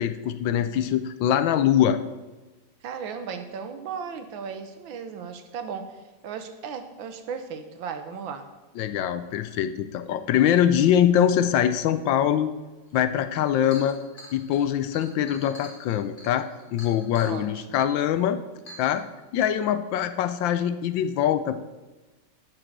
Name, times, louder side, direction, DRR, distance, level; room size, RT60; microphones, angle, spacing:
voice 1, 0.0-2.0 8.8-12.5 12.9-14.0 14.3-18.4 18.8-19.0 19.3-21.6, left 10 dB, 80° left, 11 dB, 1.3 m, -23 dB
voice 2, 2.8-8.5 17.2-17.9, right 6 dB, 80° right, 8 dB, 1.7 m, -36 dB
Chink clink, 13.5-17.4 18.1-18.2 18.7-18.9, left 1 dB, 25° left, 1.6 m, -45 dB
9.2 x 7.5 x 6.0 m, 1.2 s
omnidirectional pair, 2.1 m